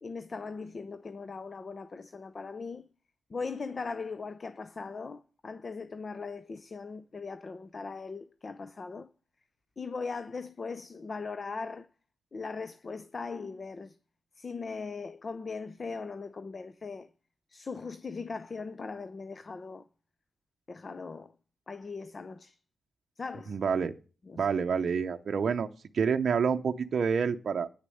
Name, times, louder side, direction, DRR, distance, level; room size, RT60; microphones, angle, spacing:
voice 1, 0.0-2.8 3.3-9.1 9.8-11.9 12.3-14.0 14.4-17.1 17.5-19.8 20.7-21.3 21.7-22.6 23.2-23.6 24.3-24.5, left 4 dB, 30° left, 0.5 m, -39 dB
voice 2, 23.5-23.9 24.4-25.7 25.9-27.7, right 6 dB, 45° right, 0.7 m, -28 dB
9.6 x 6.7 x 7.7 m
wide cardioid pair, 160°, 0 cm